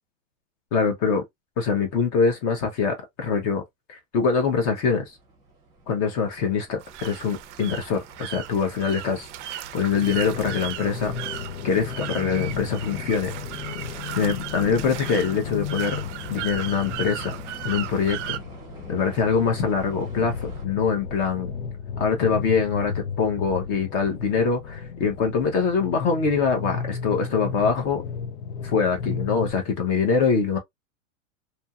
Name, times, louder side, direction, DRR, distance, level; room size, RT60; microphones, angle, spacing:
voice 1, 0.7-1.2 1.6-3.6 3.9-5.2 5.9-11.1 11.6-13.3 14.2-16.0 16.3-17.3 17.6-18.4 18.9-21.5 22.0-28.0 28.6-30.6, left 5 dB, 30° left, 0.7 m, -24 dB
sound 1, 5.0-20.7, right 2 dB, 10° right, 0.7 m, -45 dB
sound 2, 6.8-18.4, right 13 dB, 60° right, 0.5 m, -37 dB
sound 3, 9.9-29.5, left 6 dB, 90° left, 0.7 m, -34 dB
2.8 x 2.6 x 2.3 m
supercardioid pair, 150°, 41 cm